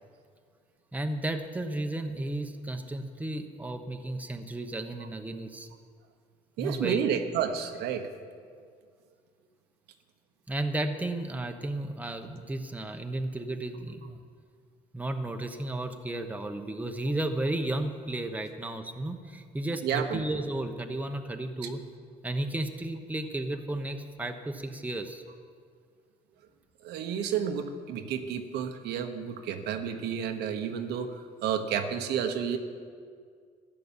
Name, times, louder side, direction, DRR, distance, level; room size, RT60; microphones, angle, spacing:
voice 1, 0.9-5.7 6.6-7.0 10.5-14.2 14.9-21.8 22.2-25.2, right 1 dB, 10° right, 5 dB, 1.0 m, -33 dB
voice 2, 6.6-8.1 19.8-20.2 26.8-32.6, right 8 dB, 80° right, 6 dB, 1.2 m, -31 dB
13.5 x 11.0 x 7.3 m, 2.1 s
cardioid pair, 110°, 17 cm